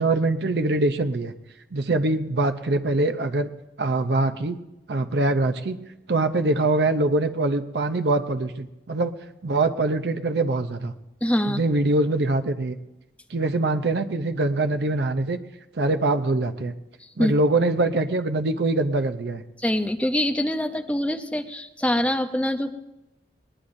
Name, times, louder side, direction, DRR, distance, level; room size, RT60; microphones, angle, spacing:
voice 1, 0.0-1.3 1.7-3.5 3.8-4.6 4.9-5.8 6.1-9.1 9.4-10.9 11.4-12.8 13.3-15.4 15.7-16.7 17.2-19.4, right 2 dB, 75° right, 9 dB, 0.6 m, -23 dB
voice 2, 11.2-11.6 17.2-17.3 19.6-22.7, left 1 dB, 5° left, 6 dB, 0.6 m, -24 dB
20.0 x 19.5 x 2.6 m, 0.96 s
head